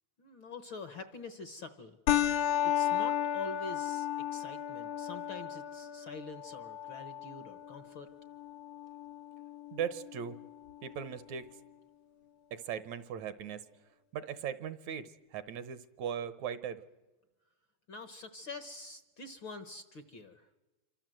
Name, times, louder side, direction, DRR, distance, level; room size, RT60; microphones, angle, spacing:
voice 1, 0.2-2.0 2.7-8.1 17.9-20.5, left 3 dB, 55° left, 10 dB, 1.5 m, -46 dB
sound 1, 2.1-11.1, left 11 dB, 85° left, 2.5 m, -34 dB
voice 2, 9.7-10.4 10.8-11.5 12.5-13.7 14.1-16.8, right 8 dB, 70° right, 15 dB, 2.2 m, -38 dB
27.5 x 24.5 x 7.7 m, 1.1 s
omnidirectional pair, 3.5 m